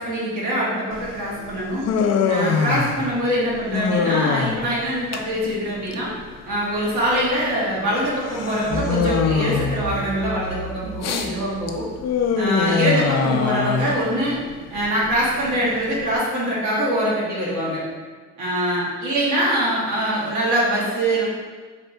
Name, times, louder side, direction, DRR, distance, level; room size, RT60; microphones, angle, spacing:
voice 1, 0.0-1.9 2.2-6.1 6.4-11.9 12.4-14.4 14.7-17.8 18.4-21.2, right 1 dB, 85° right, -6 dB, 1.4 m, -23 dB
Human voice, 0.9-16.1, left 6 dB, 60° left, 0.5 m, -25 dB
sound 1, 1.3-2.2 8.7-11.7, right 1 dB, 15° left, 0.6 m, -34 dB
3.3 x 2.6 x 4.3 m, 1.4 s
cardioid pair, 90°, 30 cm